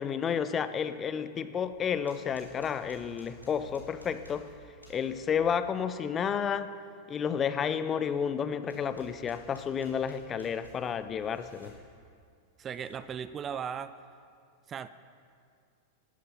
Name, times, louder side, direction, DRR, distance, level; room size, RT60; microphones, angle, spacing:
voice 1, 0.0-4.5 4.9-6.7 7.1-11.8, left 7 dB, 25° left, 13 dB, 0.5 m, -31 dB
sound 1, 1.6-5.5 8.6-11.8 12.6-13.1, right 2 dB, 90° right, 2.9 m, -54 dB
voice 2, 12.6-14.0 14.7-14.9, right 7 dB, 25° right, 14 dB, 0.4 m, -37 dB
12.0 x 11.0 x 5.8 m, 2.3 s
figure-of-eight pair, 90°, 0 cm